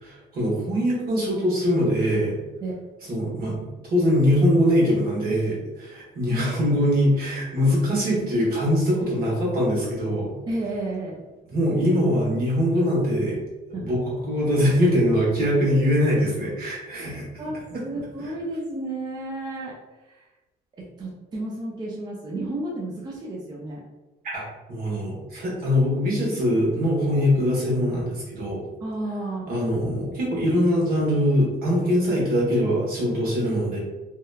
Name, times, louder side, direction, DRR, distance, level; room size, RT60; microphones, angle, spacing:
voice 1, 0.0-2.4 3.1-3.6 3.9-10.3 11.5-13.4 13.7-17.3 17.7-17.8 18.2-18.3 24.2-28.6 29.5-33.8, equal, 65° right, -4 dB, 1.1 m, -22 dB
voice 2, 6.3-6.6 10.5-11.2 13.7-13.9 17.4-17.6 17.8-19.8 20.1-20.3 20.8-23.8 28.8-29.4, right 2 dB, 25° right, -3 dB, 0.4 m, -32 dB
2.8 x 2.2 x 2.3 m, 1.1 s
cardioid pair, 110°, 17 cm